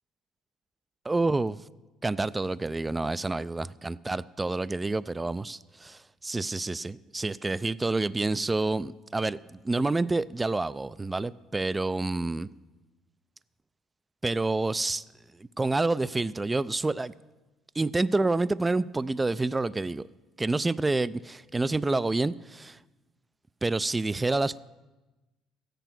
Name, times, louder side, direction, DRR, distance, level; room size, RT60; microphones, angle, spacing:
voice 1, 1.1-1.6 2.0-12.5 14.2-15.0 15.4-17.1 17.8-20.1 20.4-22.8 23.6-24.6, right 2 dB, 20° right, 18 dB, 0.3 m, -28 dB
13.5 x 9.2 x 6.0 m, 1.1 s
supercardioid pair, 75°, 0 cm